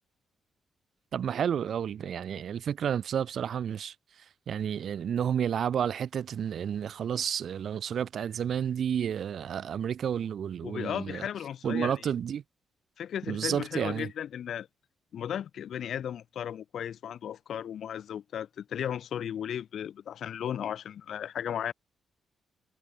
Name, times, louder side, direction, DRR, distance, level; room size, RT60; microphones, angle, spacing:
voice 1, 1.1-3.9 4.5-11.2 11.6-12.4 13.3-14.1, right 8 dB, 65° right, 1.2 m, -31 dB
voice 2, 10.6-11.9 13.0-14.7 15.1-21.7, left 9 dB, 70° left, 3.1 m, -35 dB
cardioid pair, 75°, 0 cm